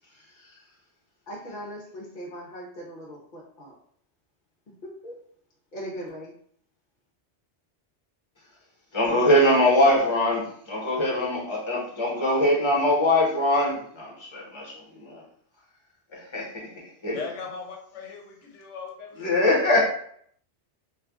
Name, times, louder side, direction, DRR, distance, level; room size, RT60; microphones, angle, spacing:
voice 1, 1.3-3.7 4.7-5.2 5.7-6.3, equal, 50° left, -3 dB, 0.7 m, -39 dB
voice 2, 8.9-15.2 16.1-16.7 17.0-17.2 19.2-19.8, left 1 dB, 25° left, -5 dB, 0.9 m, -22 dB
voice 3, 17.1-19.6, left 5 dB, 80° left, 1 dB, 0.9 m, -39 dB
3.2 x 2.3 x 2.3 m, 0.62 s
omnidirectional pair, 1.2 m